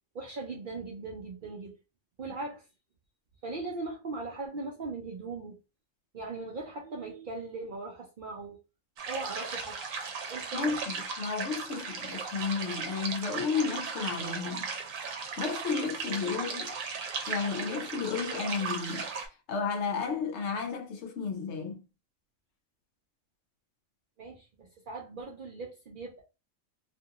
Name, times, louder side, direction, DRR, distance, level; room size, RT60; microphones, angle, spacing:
voice 1, 0.1-1.7 2.2-2.7 3.4-5.6 6.1-8.6 9.0-9.8 10.3-10.8 24.2-26.2, right 3 dB, 55° right, 0.6 m, -39 dB
sound 1, 9.0-19.3, right 5 dB, 80° right, 1.1 m, -36 dB
voice 2, 10.5-14.7 15.4-16.8 17.3-19.1 19.5-21.8, left 5 dB, 65° left, 0.8 m, -33 dB
2.6 x 2.4 x 2.7 m
omnidirectional pair, 1.4 m